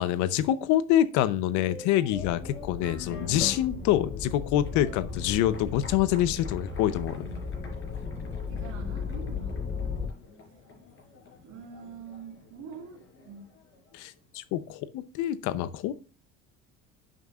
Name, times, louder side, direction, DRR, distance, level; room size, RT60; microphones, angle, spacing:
voice 1, 0.0-7.3 13.9-15.9, left 12 dB, 80° left, 0.8 m, -26 dB
sound 1, 1.4-14.2, left 5 dB, 45° left, 4.6 m, -47 dB
sound 2, 2.1-10.1, left 5 dB, 30° left, 2.6 m, -36 dB
voice 2, 8.5-9.6 11.4-13.0 13.2-13.6, right 6 dB, 75° right, 2.0 m, -44 dB
10.5 x 7.6 x 2.4 m
cardioid pair, 110°, 29 cm